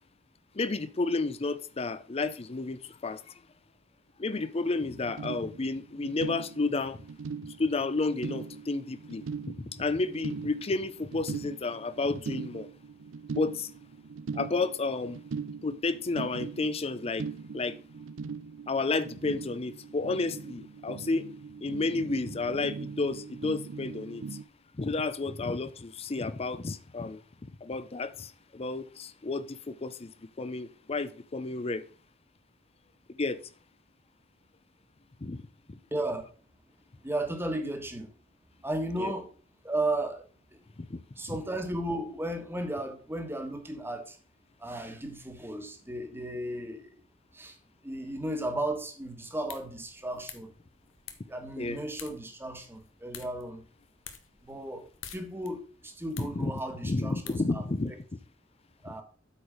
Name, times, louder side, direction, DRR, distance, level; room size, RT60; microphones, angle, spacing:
voice 1, 0.5-3.3 4.2-7.0 7.6-12.7 13.3-13.7 14.3-15.2 15.6-17.3 17.5-17.8 18.7-21.3 21.6-24.2 24.7-27.2 27.6-31.8 33.1-33.4 35.2-35.8 39.0-39.1 40.9-41.0 51.6-51.8 56.2-56.5 56.8-58.2 58.9-59.0, left 3 dB, 30° left, 0.5 m, -31 dB
sound 1, 4.9-24.4, right 5 dB, 75° right, 0.5 m, -41 dB
voice 2, 35.9-36.3 37.0-38.1 38.6-39.3 39.6-40.3 41.2-44.2 44.6-47.0 47.3-47.6 47.8-50.5 51.2-53.6 54.4-57.9 58.8-59.0, right 1 dB, 10° right, 1.4 m, -35 dB
sound 2, 49.2-58.0, left 9 dB, 85° left, 1.2 m, -51 dB
8.3 x 4.8 x 5.0 m
head